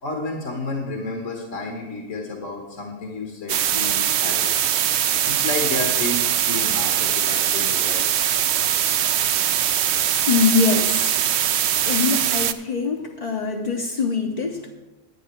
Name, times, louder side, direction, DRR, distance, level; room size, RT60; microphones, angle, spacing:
voice 1, 0.0-4.5 5.2-8.1, left 2 dB, 75° left, 1 dB, 1.7 m, -31 dB
sound 1, 3.5-12.5, right 10 dB, 65° right, 0.8 m, -21 dB
voice 2, 10.3-11.5 11.9-14.7, left 5 dB, 40° left, 0 dB, 0.7 m, -23 dB
10.0 x 10.0 x 4.4 m, 1.1 s
omnidirectional pair, 1.3 m